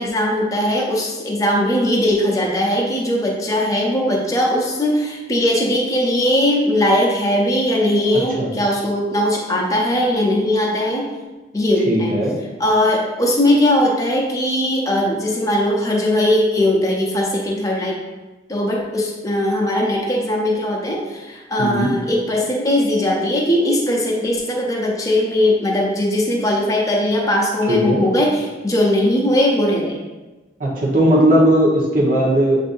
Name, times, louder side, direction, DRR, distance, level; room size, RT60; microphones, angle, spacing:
voice 1, 0.0-11.1 11.5-12.2 12.6-18.0 18.5-30.0, left 1 dB, 20° left, -1 dB, 0.6 m, -19 dB
voice 2, 11.9-12.3 21.6-21.9 27.7-28.0 30.6-32.6, right 1 dB, 50° right, -4 dB, 1.0 m, -17 dB
7.6 x 2.6 x 2.6 m, 1.2 s
head